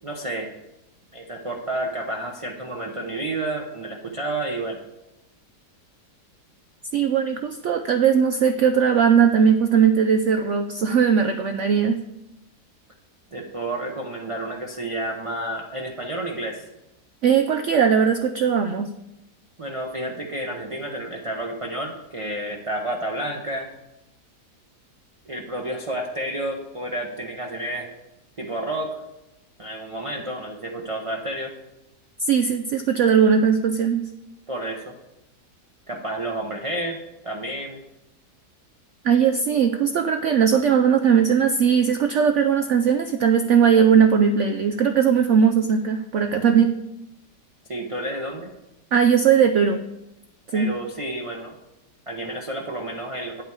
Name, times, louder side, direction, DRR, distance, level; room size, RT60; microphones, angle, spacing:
voice 1, 0.0-0.5 1.1-4.8 13.3-16.6 19.6-23.7 25.3-27.9 28.4-29.0 29.6-31.5 34.5-35.0 35.9-37.0 37.2-37.8 47.7-48.5 50.5-51.5 52.1-53.4, right 1 dB, 30° right, 0 dB, 0.6 m, -30 dB
voice 2, 6.9-12.0 17.2-18.9 32.3-34.1 39.0-46.7 48.9-49.8 50.5-50.7, right 7 dB, 80° right, 8 dB, 0.6 m, -19 dB
9.2 x 8.1 x 4.8 m, 0.92 s
omnidirectional pair, 1.8 m